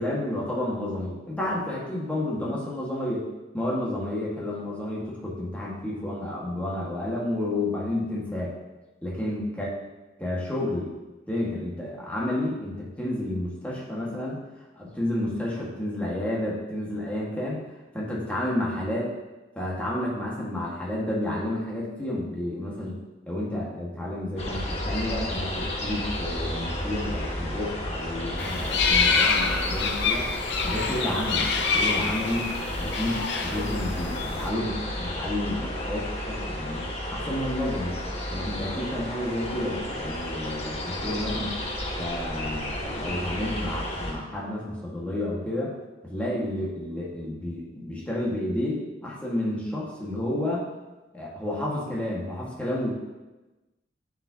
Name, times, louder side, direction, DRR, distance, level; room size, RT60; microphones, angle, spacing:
voice 1, 0.0-3.2 3.5-8.5 9.0-9.7 10.2-10.9 11.3-14.4 14.7-17.6 17.9-19.1 19.5-30.3 30.6-32.5 32.8-36.8 37.1-38.0 38.3-41.6 42.0-45.7 46.0-50.7 51.1-52.9, left 1 dB, 10° left, -5 dB, 1.5 m, -30 dB
sound 1, 24.4-44.1, left 1 dB, 35° left, 1.3 m, -32 dB
sound 2, 28.4-34.5, left 5 dB, 70° left, 0.6 m, -26 dB
10.0 x 5.0 x 2.8 m, 1.1 s
head